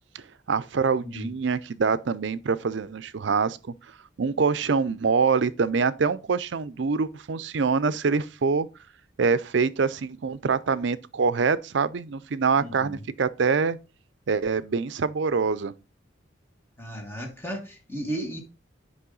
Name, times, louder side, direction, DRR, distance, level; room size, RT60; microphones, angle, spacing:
voice 1, 0.1-3.6 4.2-8.7 9.2-13.8 14.3-15.7, right 5 dB, 65° right, 0.5 m, -25 dB
voice 2, 1.0-1.3 12.6-13.0 16.8-18.4, right 1 dB, 10° left, 1.6 m, -35 dB
8.5 x 5.4 x 3.9 m
head